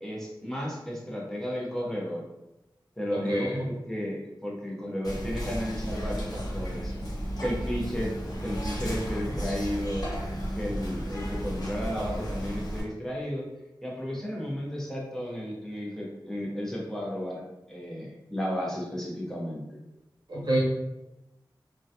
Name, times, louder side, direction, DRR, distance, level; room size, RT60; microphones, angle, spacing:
voice 1, 0.0-2.2 3.0-6.9 7.4-10.1 10.5-13.5 13.8-19.6, equal, 5° left, -4 dB, 0.7 m, -33 dB
voice 2, 3.1-3.7 20.3-20.6, right 1 dB, 60° right, -4 dB, 0.9 m, -27 dB
Whispering, 5.0-12.8, equal, 55° left, 0.8 m, -33 dB
2.3 x 2.2 x 2.7 m, 0.93 s
wide cardioid pair, 70°, 8 cm